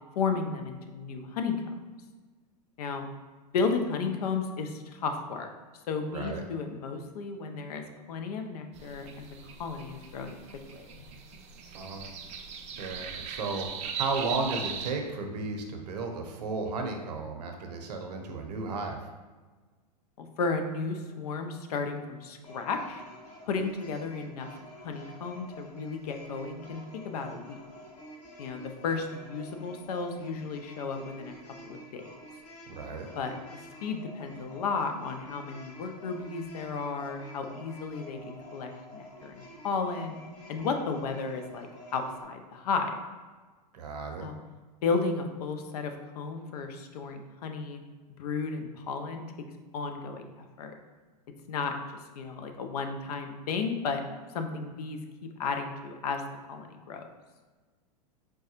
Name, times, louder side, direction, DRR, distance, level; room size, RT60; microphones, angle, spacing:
voice 1, 0.2-1.6 2.8-3.1 3.5-5.5 5.9-10.4 10.7-11.1 20.2-23.0 23.5-24.5 24.8-27.6 28.4-31.4 31.6-32.1 33.2-40.2 40.5-42.9 44.2-44.4 44.8-47.8 48.2-49.5 49.7-50.7 51.5-54.0 54.3-55.0 55.4-56.2 56.5-57.1, left 4 dB, 65° left, 6 dB, 0.5 m, -33 dB
voice 2, 6.1-6.4 11.7-12.0 12.8-13.7 14.0-19.1 32.7-33.1 43.7-44.3, right 3 dB, 75° right, 3 dB, 0.7 m, -34 dB
sound 1, 8.7-14.9, right 7 dB, 30° right, 0.4 m, -39 dB
sound 2, 22.4-42.2, equal, 35° left, 0.9 m, -49 dB
4.6 x 2.2 x 2.8 m, 1.3 s
hypercardioid pair, 105°, 21 cm